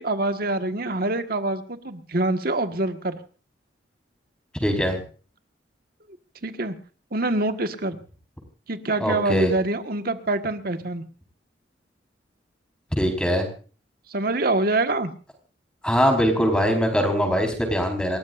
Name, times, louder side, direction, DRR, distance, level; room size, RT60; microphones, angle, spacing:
voice 1, 0.0-3.2 6.4-6.7 7.1-8.0 8.7-11.0 14.1-15.1, right 2 dB, 55° right, 8 dB, 1.5 m, -25 dB
voice 2, 4.6-5.0 9.0-9.5 13.0-13.5 15.8-18.2, equal, 5° left, 4 dB, 4.3 m, -22 dB
28.5 x 14.0 x 2.6 m, 0.39 s
head